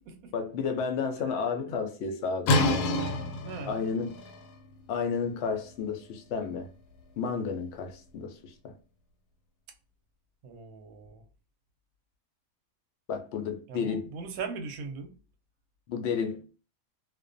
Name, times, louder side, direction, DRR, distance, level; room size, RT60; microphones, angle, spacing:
voice 1, 0.3-2.7 3.7-4.1 4.9-6.7 7.2-8.7 13.1-14.1 15.9-16.4, left 5 dB, 70° left, 0.6 m, -31 dB
sound 1, 2.5-8.1, left 1 dB, 90° left, 1.1 m, -31 dB
voice 2, 3.4-3.8 10.4-11.3 13.7-15.1, right 5 dB, 70° right, 1.0 m, -40 dB
2.4 x 2.2 x 2.5 m
omnidirectional pair, 1.6 m